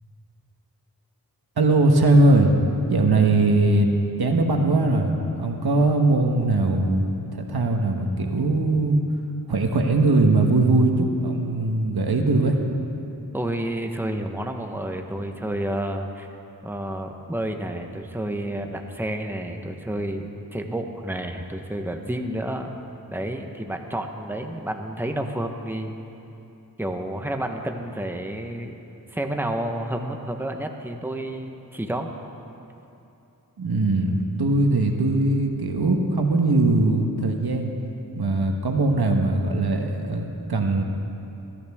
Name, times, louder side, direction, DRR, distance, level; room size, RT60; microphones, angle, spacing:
voice 1, 1.6-2.5 2.9-3.9 4.2-9.0 9.5-12.6 33.6-37.7 38.1-40.8, right 2 dB, 90° right, 3 dB, 1.2 m, -20 dB
voice 2, 13.3-16.3 16.6-22.7 23.1-25.9 26.8-28.8 29.1-32.1, right 1 dB, 5° right, 4 dB, 1.0 m, -30 dB
21.0 x 13.5 x 3.6 m, 2.8 s
wide cardioid pair, 65°, 37 cm